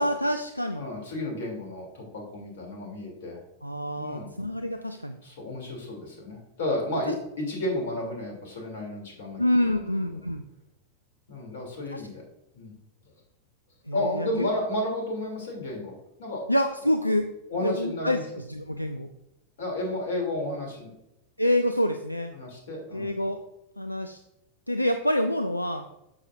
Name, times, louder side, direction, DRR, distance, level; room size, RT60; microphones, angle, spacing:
voice 1, 0.0-0.8 3.6-5.2 9.4-10.4 11.9-12.0 13.9-14.5 16.5-17.3 17.6-19.1 21.4-22.3 22.9-23.4 23.8-24.2 24.7-25.8, left 1 dB, 90° left, 7 dB, 0.4 m, -27 dB
voice 2, 0.7-3.4 4.0-4.3 5.2-9.4 9.7-9.9 11.3-12.2 12.5-12.7 13.9-15.9 16.2-16.4 17.5-18.2 19.6-20.9 22.3-23.1, left 1 dB, 60° left, 1 dB, 3.0 m, -32 dB
9.6 x 7.1 x 2.6 m, 0.87 s
figure-of-eight pair, 90°, 0 cm